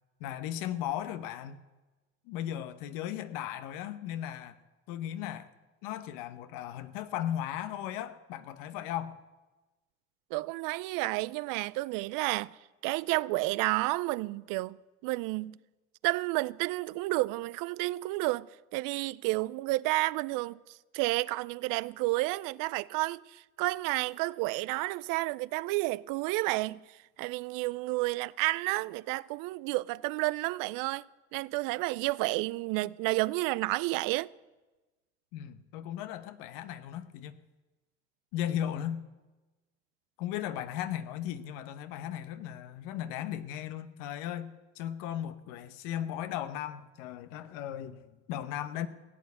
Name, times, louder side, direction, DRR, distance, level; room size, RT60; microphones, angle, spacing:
voice 1, 0.2-1.6 2.3-4.6 4.9-5.5 5.8-9.2 35.3-37.4 38.3-39.1 40.2-48.9, left 11 dB, 80° left, 1.0 m, -36 dB
voice 2, 10.3-12.6 12.8-14.8 15.0-15.6 16.0-31.0 31.3-34.3, right 21 dB, 75° right, 0.5 m, -31 dB
16.5 x 8.6 x 8.2 m
supercardioid pair, 70°, 33 cm